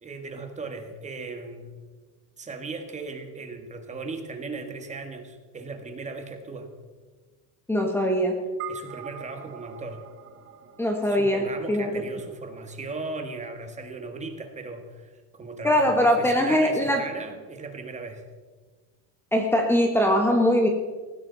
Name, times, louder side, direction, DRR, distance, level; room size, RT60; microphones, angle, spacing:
voice 1, 0.0-1.8 2.4-6.7 8.7-10.0 11.0-18.2, right 3 dB, 20° right, 5 dB, 1.7 m, -37 dB
voice 2, 7.7-8.4 10.8-11.9 15.6-17.0 19.3-20.7, equal, 5° left, 2 dB, 1.3 m, -22 dB
sound 1, 8.6-13.2, right 10 dB, 35° right, 2.0 m, -44 dB
20.0 x 15.5 x 4.0 m, 1.4 s
cardioid pair, 170°, 35 cm